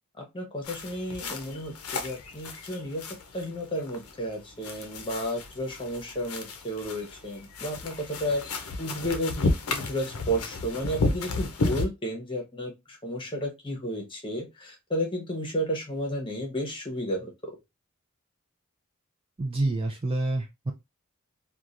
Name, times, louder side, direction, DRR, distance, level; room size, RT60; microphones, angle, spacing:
voice 1, 0.2-3.1 3.3-12.7 13.0-17.3, equal, 20° left, 1 dB, 0.9 m, -32 dB
sound 1, 0.6-11.9, left 3 dB, 85° left, 0.6 m, -33 dB
voice 2, 19.4-20.7, right 2 dB, 25° right, 1 dB, 0.4 m, -28 dB
3.0 x 2.3 x 2.5 m, 0.22 s
head